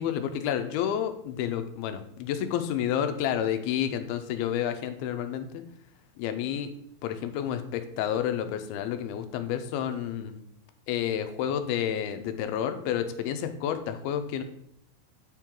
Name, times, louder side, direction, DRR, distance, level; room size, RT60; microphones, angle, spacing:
voice 1, 0.0-5.6 6.2-6.7 7.0-10.4 10.9-14.4, left 9 dB, 90° left, 8 dB, 2.6 m, -30 dB
9.7 x 3.7 x 4.5 m, 0.74 s
omnidirectional pair, 4.4 m